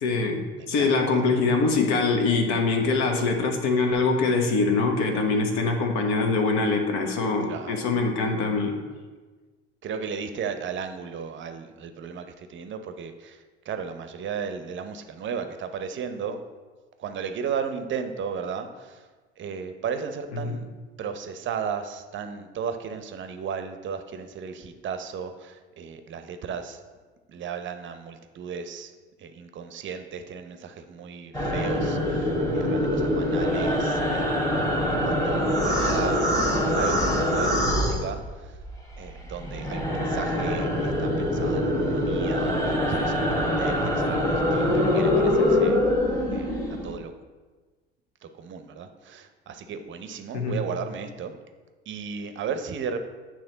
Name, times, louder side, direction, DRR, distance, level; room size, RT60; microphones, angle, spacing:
voice 1, 0.0-8.8 20.4-20.6 50.3-50.6, left 3 dB, 60° left, 4 dB, 1.1 m, -23 dB
voice 2, 0.6-1.0 7.5-7.8 9.8-16.4 17.0-19.1 19.4-20.7 21.0-26.8 27.3-28.9 29.2-34.4 35.0-36.3 36.8-38.6 39.0-45.8 46.3-46.6 46.8-47.1 48.2-51.4 51.9-53.0, right 6 dB, 35° right, 8 dB, 0.7 m, -35 dB
sound 1, 31.3-38.7 39.0-47.0, left 1 dB, 10° left, 1.4 m, -24 dB
8.7 x 3.1 x 3.9 m, 1.3 s
hypercardioid pair, 65°, 32 cm